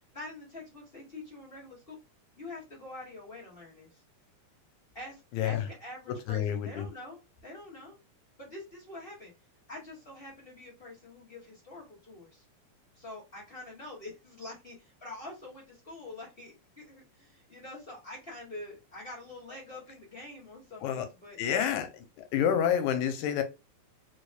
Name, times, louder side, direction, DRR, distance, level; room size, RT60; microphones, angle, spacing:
voice 1, 0.1-2.0 2.4-4.0 4.9-8.0 8.4-9.3 9.7-12.4 12.9-21.8, left 2 dB, 25° left, 1.3 m, -45 dB
voice 2, 6.3-6.9 20.8-21.1 21.4-21.9 22.2-23.4, left 9 dB, 90° left, 2.0 m, -28 dB
4.5 x 3.2 x 2.2 m
omnidirectional pair, 3.4 m